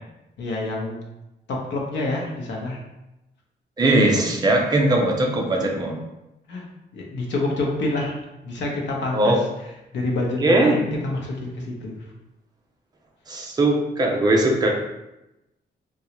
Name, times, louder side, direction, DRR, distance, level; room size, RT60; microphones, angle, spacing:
voice 1, 0.4-1.0 1.5-2.8 6.5-9.4 9.9-12.0, left 2 dB, 90° left, -1 dB, 0.7 m, -27 dB
voice 2, 3.8-6.0 9.1-9.4 10.4-10.8 13.3-14.7, right 1 dB, 20° right, 0 dB, 0.4 m, -19 dB
3.8 x 2.3 x 2.9 m, 0.94 s
wide cardioid pair, 175°, 18 cm